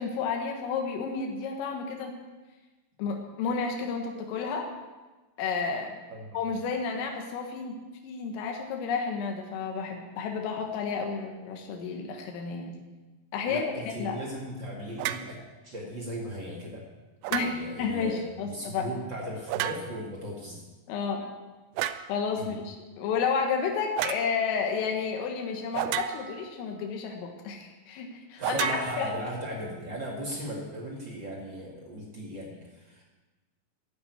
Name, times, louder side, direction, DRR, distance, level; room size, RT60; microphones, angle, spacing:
voice 1, 0.0-2.2 3.0-4.7 5.4-6.0 6.3-7.8 8.0-12.8 13.3-13.7 14.0-14.2 17.3-18.9 20.9-21.3 22.1-29.1, left 5 dB, 80° left, 2 dB, 4.1 m, -31 dB
voice 2, 13.4-15.4 15.6-16.9 17.3-20.6 22.4-22.5 28.4-33.1, equal, 45° right, -3 dB, 1.4 m, -37 dB
sound 1, 15.0-15.3 17.2-17.8 19.5-20.1 21.8-22.1 24.0-24.3 25.7-26.5 28.4-29.5, right 12 dB, 85° right, 3.2 m, -32 dB
12.0 x 8.9 x 9.4 m, 1.2 s
omnidirectional pair, 5.8 m